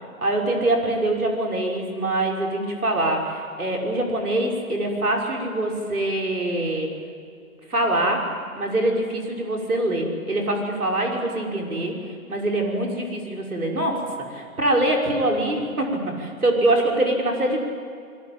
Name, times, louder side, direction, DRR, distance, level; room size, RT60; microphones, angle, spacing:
voice 1, 0.2-6.9 7.7-8.3 8.5-11.9 12.3-14.0 14.3-15.9 16.2-17.6, right 1 dB, 85° right, 0 dB, 5.9 m, -24 dB
26.5 x 22.0 x 8.8 m, 2.3 s
figure-of-eight pair, 125°, 43 cm